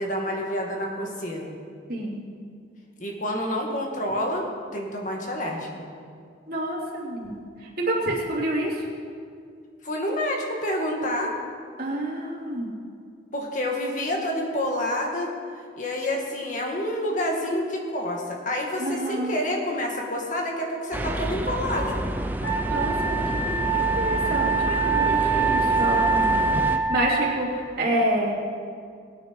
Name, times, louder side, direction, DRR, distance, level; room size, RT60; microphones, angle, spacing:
voice 1, 0.0-1.5 3.0-4.5 4.7-5.7 9.8-11.3 13.3-15.3 15.8-22.0, left 1 dB, 40° left, 0 dB, 2.1 m, -28 dB
voice 2, 1.9-2.2 6.5-7.4 7.8-8.8 11.8-12.7 18.8-19.4 22.7-26.3 26.6-28.3, right 1 dB, 50° right, -5 dB, 3.4 m, -28 dB
sound 1, 20.9-26.8, right 1 dB, 10° right, 0.6 m, -29 dB
Wind instrument woodwind instrument, 22.4-27.3, right 4 dB, 70° left, 3.0 m, -24 dB
21.0 x 8.9 x 4.8 m, 2.2 s
head